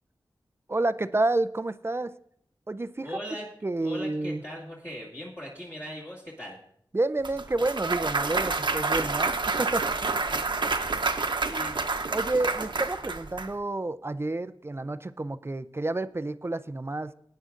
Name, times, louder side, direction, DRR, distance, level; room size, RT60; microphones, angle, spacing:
voice 1, 0.7-2.1 2.7-3.2 3.6-4.4 6.9-10.2 11.3-11.4 12.1-17.1, right 2 dB, 30° right, 13 dB, 0.4 m, -29 dB
voice 2, 3.0-3.5 3.8-6.6 11.4-11.8, equal, 30° left, -6 dB, 2.2 m, -39 dB
Clapping / Cheering / Applause, 7.2-13.5, right 3 dB, 60° right, 0.9 m, -28 dB
17.5 x 9.4 x 2.5 m, 0.67 s
wide cardioid pair, 55°, 9 cm